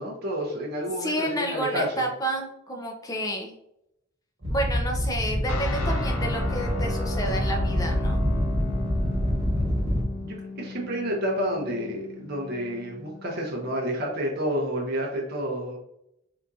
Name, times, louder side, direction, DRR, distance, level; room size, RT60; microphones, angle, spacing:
voice 1, 0.0-2.1 10.2-15.8, equal, 50° right, -1 dB, 0.6 m, -30 dB
voice 2, 1.0-3.6 4.5-8.2, right 1 dB, 15° left, 2 dB, 0.5 m, -30 dB
sound 1, 4.4-10.0, equal, 30° right, 1.2 m, -26 dB
sound 2, 5.5-13.7, left 3 dB, 90° left, 0.5 m, -37 dB
3.7 x 2.7 x 2.3 m, 0.81 s
head